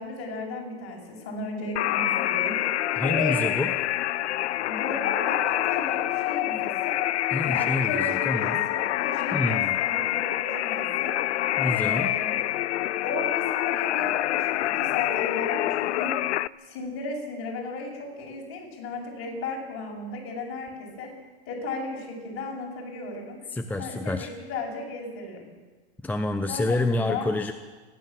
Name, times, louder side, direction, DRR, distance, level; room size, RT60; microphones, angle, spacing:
voice 1, 0.0-3.5 4.6-7.0 7.4-11.4 11.7-12.3 13.0-16.1 16.6-21.1 21.5-23.4 23.8-25.5 26.5-27.3, left 3 dB, 40° left, -1 dB, 7.7 m, -35 dB
sound 1, 1.8-16.5, left 14 dB, 80° left, 0.6 m, -26 dB
voice 2, 3.0-3.7 7.3-8.6 9.3-9.8 11.6-12.1 23.5-24.3 26.0-27.5, left 2 dB, 5° left, 7 dB, 0.6 m, -28 dB
29.0 x 11.5 x 7.6 m, 1.3 s
hypercardioid pair, 130°, 34 cm